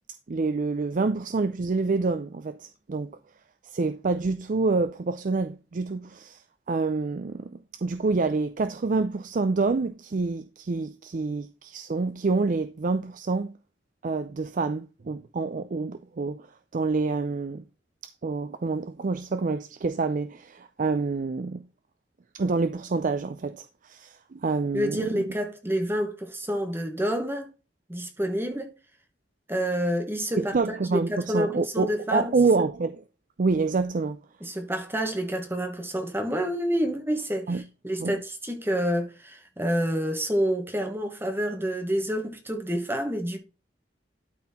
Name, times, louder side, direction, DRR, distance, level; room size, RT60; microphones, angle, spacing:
voice 1, 0.3-3.1 3.6-6.4 6.7-13.5 14.0-16.5 16.7-17.6 18.0-21.7 22.3-25.2 30.4-33.0 33.4-34.2 37.5-37.6 38.0-38.2, right 3 dB, 45° right, 0.5 m, -27 dB
voice 2, 24.7-27.5 27.9-28.7 29.5-32.3 34.4-43.4, equal, 15° right, 1.3 m, -28 dB
12.0 x 4.2 x 4.2 m
head